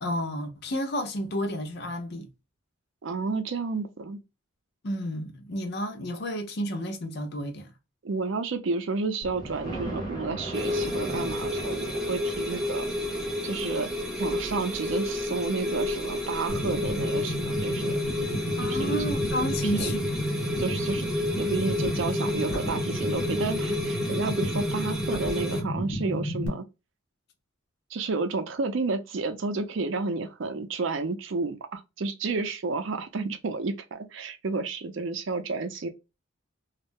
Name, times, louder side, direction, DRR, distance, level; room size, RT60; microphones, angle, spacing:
voice 1, 0.0-2.3 4.8-7.7 18.6-20.5, equal, 55° left, 0.6 m, -31 dB
voice 2, 3.0-4.2 8.0-12.9 13.4-13.9 14.2-17.9 18.7-19.0 19.6-19.9 20.6-21.1 21.4-26.6 27.9-35.9, right 3 dB, 65° right, 0.5 m, -31 dB
Thunder, 9.2-18.9 19.5-19.6 20.0-20.1 20.4-20.5, right 1 dB, 20° left, 0.9 m, -41 dB
sound 1, 10.5-25.6, left 1 dB, 5° right, 0.5 m, -31 dB
sound 2, 16.5-26.5, equal, 80° left, 0.9 m, -32 dB
2.4 x 2.1 x 3.4 m
head